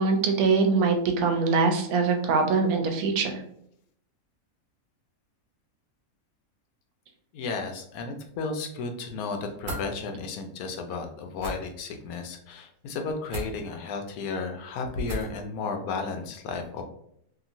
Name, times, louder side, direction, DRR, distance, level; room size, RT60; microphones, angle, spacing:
voice 1, 0.0-3.4, right 4 dB, 90° right, 4 dB, 1.1 m, -23 dB
voice 2, 7.3-16.8, left 4 dB, 85° left, 4 dB, 1.0 m, -33 dB
sound 1, 9.6-9.9 11.3-11.5 13.3-13.5 15.0-15.4, right 1 dB, 50° right, 1.3 m, -34 dB
2.9 x 2.7 x 2.5 m, 0.71 s
omnidirectional pair, 1.5 m